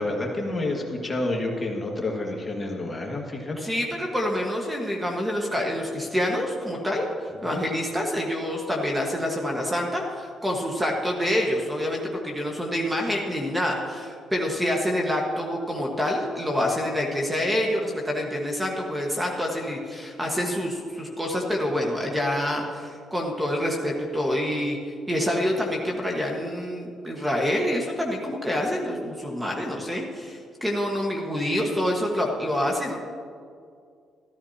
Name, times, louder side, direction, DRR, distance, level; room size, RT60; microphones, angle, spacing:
voice 1, 0.0-3.6 7.4-7.5, left 2 dB, 25° left, 0 dB, 1.9 m, -29 dB
voice 2, 3.6-24.8 25.1-33.0, left 1 dB, 10° right, 0 dB, 1.5 m, -27 dB
14.0 x 13.0 x 2.9 m, 2.2 s
cardioid pair, 90°, 0 cm